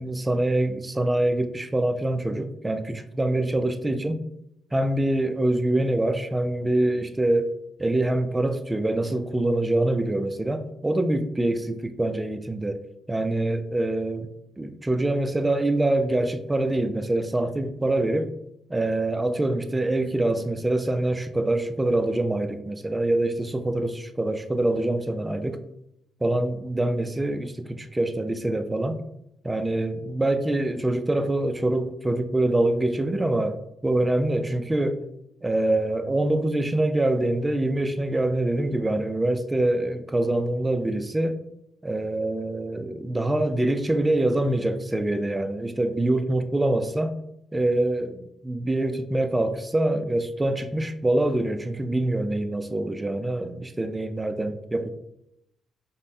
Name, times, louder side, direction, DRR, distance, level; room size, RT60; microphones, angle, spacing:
voice 1, 0.0-4.2 4.7-7.5 7.8-12.8 13.1-14.3 14.6-18.3 18.7-25.6 26.2-29.0 29.4-35.0 35.4-41.4 41.8-47.2 47.5-54.9, right 1 dB, 15° right, 0.3 m, -25 dB
5.2 x 2.1 x 2.7 m
cardioid pair, 90°, 0 cm